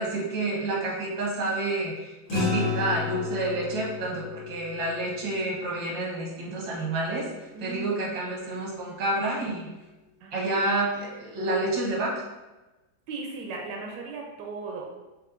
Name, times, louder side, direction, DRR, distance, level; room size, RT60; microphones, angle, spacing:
voice 1, 0.0-7.3 7.6-9.7 10.3-12.1, right 2 dB, 90° right, -4 dB, 1.9 m, -29 dB
sound 1, 2.3-7.0, left 4 dB, 85° left, 2.1 m, -33 dB
voice 2, 7.5-8.0 8.7-8.8 10.2-10.6 13.1-14.9, right 3 dB, 75° right, 0 dB, 1.2 m, -37 dB
5.4 x 2.8 x 2.5 m, 1.1 s
omnidirectional pair, 2.0 m